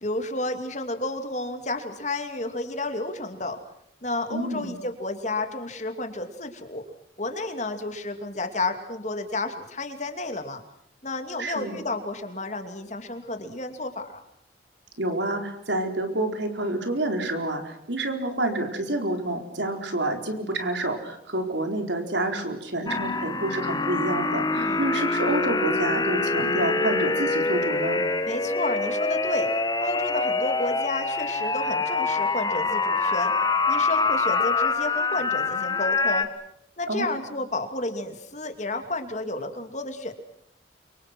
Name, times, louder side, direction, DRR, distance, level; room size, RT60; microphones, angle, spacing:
voice 1, 0.0-3.6 4.0-6.8 7.2-10.6 11.0-14.2 24.5-24.8 28.3-29.5 29.8-33.3 33.7-36.3 36.8-40.1, left 2 dB, 40° left, 7 dB, 2.6 m, -31 dB
voice 2, 4.3-4.8 11.4-11.8 15.0-28.0 36.9-37.1, right 1 dB, 70° right, 5 dB, 4.4 m, -28 dB
sound 1, 22.9-36.2, left 3 dB, 20° left, 1.4 m, -25 dB
29.0 x 25.0 x 6.1 m, 0.73 s
head